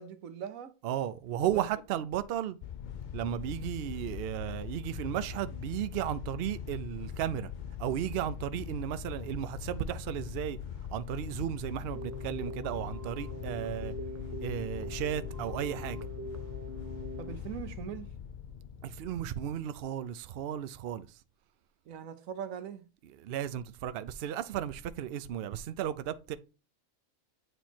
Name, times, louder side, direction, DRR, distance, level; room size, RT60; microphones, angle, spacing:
voice 1, 0.0-0.7 1.3-1.6 3.6-3.7 17.2-18.1 21.9-22.9, right 8 dB, 90° right, 1.2 m, -41 dB
voice 2, 0.8-2.6 3.1-7.5 7.8-10.6 10.9-13.9 14.4-16.0 18.8-21.2 23.2-26.4, right 11 dB, 65° right, 0.6 m, -34 dB
sound 1, 2.6-19.2, left 9 dB, 75° left, 0.4 m, -41 dB
Keyboard (musical), 11.9-17.3, equal, 25° right, 0.4 m, -42 dB
8.0 x 3.0 x 4.3 m
omnidirectional pair, 1.4 m